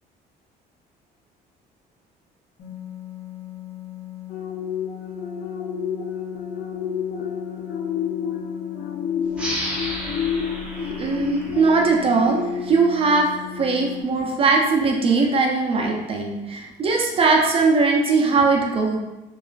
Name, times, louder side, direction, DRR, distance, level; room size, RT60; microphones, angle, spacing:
sound 1, 2.6-14.0, left 15 dB, 75° left, 0.9 m, -38 dB
sound 2, 4.3-14.2 14.6-14.8, left 7 dB, 55° left, 0.4 m, -30 dB
sound 3, 9.3-12.6, equal, 5° right, 0.7 m, -33 dB
voice 1, 10.8-19.0, right 4 dB, 35° right, 0 dB, 0.4 m, -20 dB
2.8 x 2.4 x 2.3 m, 1.1 s
cardioid pair, 110°, 17 cm